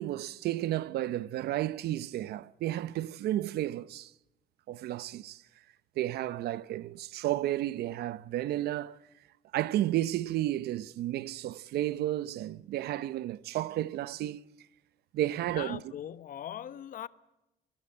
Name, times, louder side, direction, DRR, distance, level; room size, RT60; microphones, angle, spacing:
voice 1, 0.0-4.1 4.7-5.4 6.0-9.0 9.5-14.4 15.1-15.8, right 14 dB, 70° right, 0.8 m, -32 dB
voice 2, 15.5-17.1, left 10 dB, 55° left, 1.2 m, -40 dB
25.5 x 21.0 x 8.0 m
cardioid pair, 110°, 17 cm